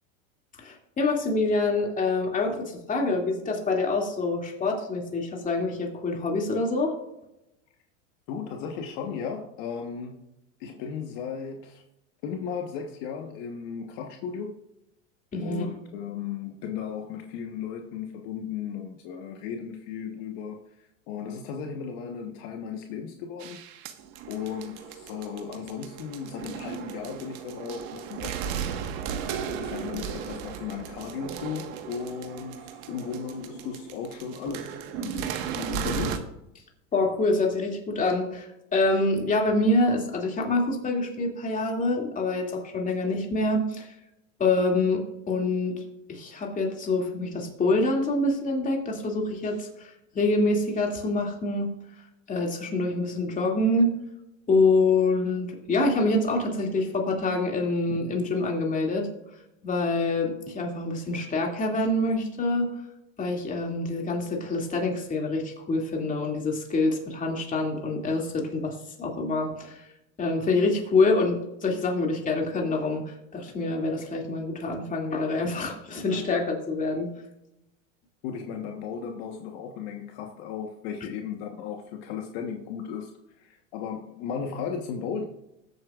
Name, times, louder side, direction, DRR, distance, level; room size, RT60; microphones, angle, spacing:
voice 1, 0.6-6.9 15.3-15.7 36.9-43.9 44.4-45.8 46.1-51.7 52.3-54.0 54.5-59.1 59.6-62.7 63.2-69.9 70.2-77.1, left 2 dB, 20° left, 0 dB, 2.6 m, -26 dB
voice 2, 8.3-10.2 10.6-11.8 12.2-14.5 15.4-23.6 24.3-28.4 29.0-29.2 29.5-36.3 78.2-83.1 83.4-85.2, left 7 dB, 55° left, 3 dB, 1.3 m, -36 dB
sound 1, 23.4-36.2, right 8 dB, 55° right, 1.5 m, -35 dB
20.5 x 8.0 x 2.5 m, 0.87 s
supercardioid pair, 125°, 38 cm